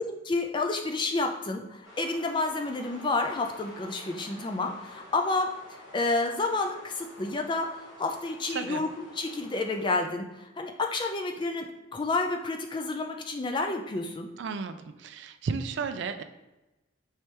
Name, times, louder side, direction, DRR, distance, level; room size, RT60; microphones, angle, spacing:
voice 1, 0.0-5.5 5.9-11.7 11.9-14.3, left 3 dB, 25° left, 3 dB, 0.3 m, -30 dB
sound 1, 1.8-10.0, left 1 dB, 70° left, 1.5 m, -49 dB
voice 2, 14.4-16.2, right 5 dB, 60° right, 9 dB, 0.3 m, -33 dB
4.6 x 3.3 x 2.9 m, 1.0 s
head